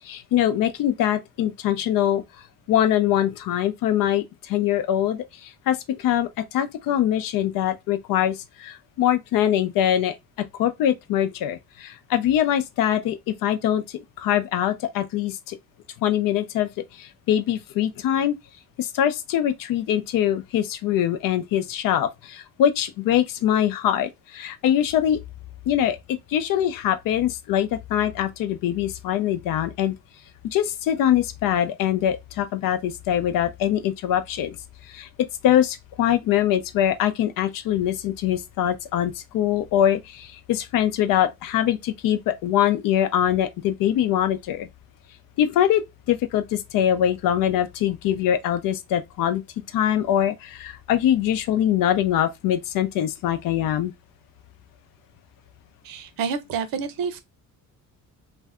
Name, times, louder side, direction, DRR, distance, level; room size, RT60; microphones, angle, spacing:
voice 1, 0.0-2.2 2.7-8.3 8.6-10.2 10.6-13.8 14.2-15.6 16.0-16.7 17.0-18.4 18.8-25.2 25.7-29.9 30.5-34.6 34.9-35.1 35.4-44.7 45.4-45.8 46.1-49.4 49.7-53.9, left 11 dB, 70° left, 0.5 m, -23 dB
voice 2, 55.8-57.2, right 6 dB, 75° right, 0.7 m, -28 dB
2.6 x 2.2 x 3.5 m
cardioid pair, 130°, 34 cm